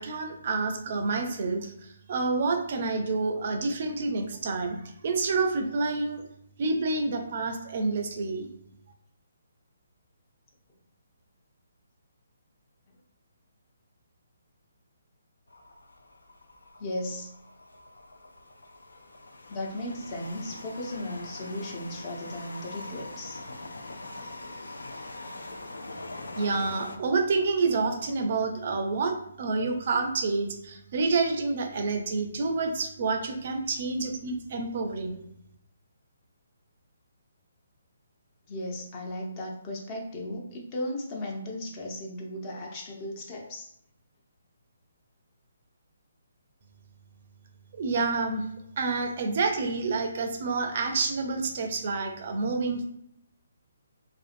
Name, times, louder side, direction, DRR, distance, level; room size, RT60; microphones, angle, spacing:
voice 1, 0.0-6.2 6.6-8.5 26.4-35.2 47.7-48.4 48.8-52.8, right 3 dB, 50° right, 5 dB, 0.4 m, -28 dB
sound 1, 15.5-27.0, left 2 dB, 85° left, 0.3 m, -43 dB
voice 2, 16.8-17.3 19.5-23.4 38.5-43.7, left 1 dB, 30° left, -1 dB, 0.5 m, -36 dB
2.5 x 2.4 x 2.5 m, 0.73 s
figure-of-eight pair, 145°, 0 cm